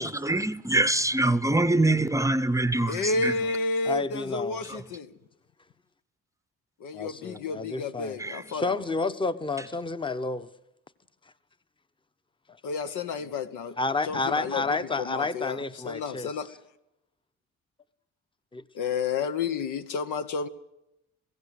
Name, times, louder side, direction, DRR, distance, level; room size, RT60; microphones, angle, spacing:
voice 1, 0.0-3.3 4.7-4.8 8.2-8.4, right 2 dB, 10° right, 0.7 m, -24 dB
voice 2, 2.9-5.1 6.8-8.8 12.6-13.8 14.0-16.5 18.7-20.5, left 4 dB, 85° left, 1.2 m, -31 dB
voice 3, 3.9-4.7 6.9-8.2 8.5-10.5 13.8-16.3 18.5-18.6, left 3 dB, 15° left, 0.9 m, -30 dB
21.5 x 16.0 x 8.2 m
cardioid pair, 90°, 30 cm